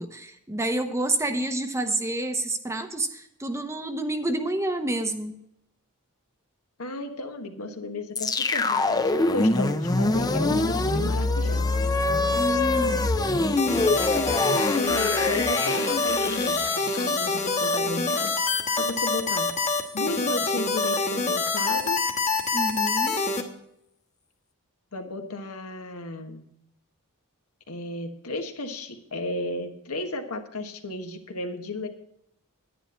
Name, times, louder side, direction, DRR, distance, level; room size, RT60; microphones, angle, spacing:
voice 1, 0.0-5.4 12.3-13.1 22.5-23.2, right 1 dB, 15° right, 7 dB, 0.8 m, -28 dB
voice 2, 6.8-11.7 14.5-18.3 18.7-19.5 19.9-22.0 24.9-26.5 27.7-31.9, left 2 dB, 80° left, 5 dB, 1.4 m, -34 dB
sound 1, 8.1-18.3, left 2 dB, 15° left, 0.5 m, -25 dB
sound 2, 13.6-23.4, left 3 dB, 35° left, 1.3 m, -26 dB
10.0 x 10.0 x 4.4 m, 0.78 s
head